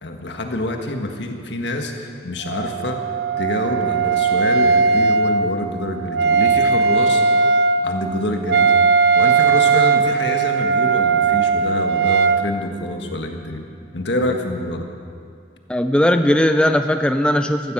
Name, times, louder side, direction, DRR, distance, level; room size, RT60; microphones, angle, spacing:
voice 1, 0.0-3.0 3.4-7.2 7.8-8.7 9.1-13.6 13.9-14.9, left 1 dB, 80° left, 3 dB, 1.7 m, -26 dB
Wind instrument woodwind instrument, 2.4-12.4, right 5 dB, 65° right, 0.5 m, -18 dB
voice 2, 15.7-17.7, left 1 dB, 5° left, 7 dB, 0.4 m, -18 dB
15.5 x 14.0 x 6.2 m, 2.3 s
head